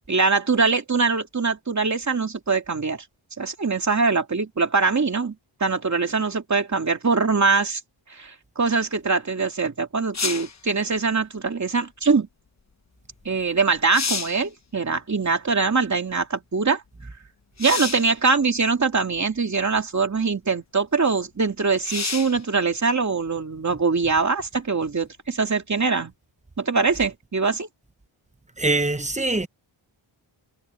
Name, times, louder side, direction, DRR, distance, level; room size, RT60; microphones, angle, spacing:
voice 1, 0.1-3.0 3.4-5.3 5.6-7.8 8.1-12.3 13.2-16.8 17.6-26.1 26.6-27.7, right 4 dB, 35° right, 2.6 m, -23 dB
sound 1, 10.1-10.6 13.2-13.3 13.7-14.5 17.6-18.1 19.1-19.2 21.8-22.4 26.0-26.1, left 5 dB, 35° left, 1.0 m, -29 dB
voice 2, 28.6-29.5, right 2 dB, 15° right, 0.9 m, -23 dB
wide cardioid pair, 135°, 48 cm